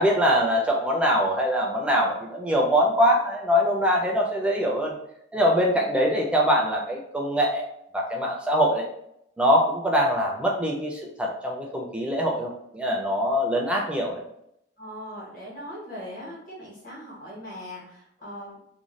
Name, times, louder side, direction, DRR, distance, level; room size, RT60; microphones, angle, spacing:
voice 1, 0.0-4.9 5.3-7.6 7.9-8.9 9.4-14.2, equal, 5° right, -1 dB, 0.4 m, -23 dB
voice 2, 14.8-18.6, equal, 45° left, -6 dB, 1.2 m, -40 dB
2.6 x 2.2 x 3.1 m, 0.77 s
head